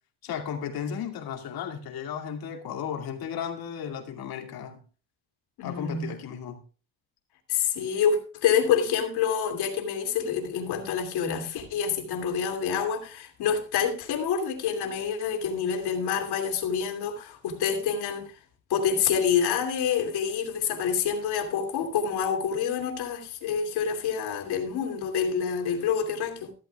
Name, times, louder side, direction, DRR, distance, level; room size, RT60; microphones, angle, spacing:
voice 1, 0.2-4.8 5.6-6.6, left 8 dB, 65° left, 2.5 m, -34 dB
voice 2, 5.6-6.1 7.5-18.4 18.7-26.5, left 7 dB, 85° left, 2.8 m, -27 dB
14.0 x 12.5 x 2.4 m
cardioid pair, 180°, 38 cm